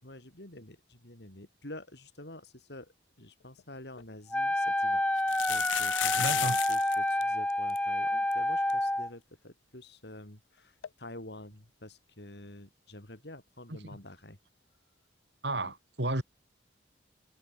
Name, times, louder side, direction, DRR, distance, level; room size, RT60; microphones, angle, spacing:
voice 1, 0.0-5.2 5.5-14.4 15.6-15.7, left 1 dB, 65° left, 4.4 m, -48 dB
sound 1, 3.6-3.7 4.0-4.1 5.2-7.0 7.2-7.3 7.5-7.8 8.3-8.4 8.7-8.8 10.8-10.9, left 16 dB, 90° left, 0.4 m, -33 dB
Wind instrument woodwind instrument, 4.3-9.1, left 1 dB, 5° left, 1.0 m, -29 dB
voice 2, 6.2-6.6 13.7-14.0 15.4-16.2, right 2 dB, 70° right, 5.0 m, -33 dB
head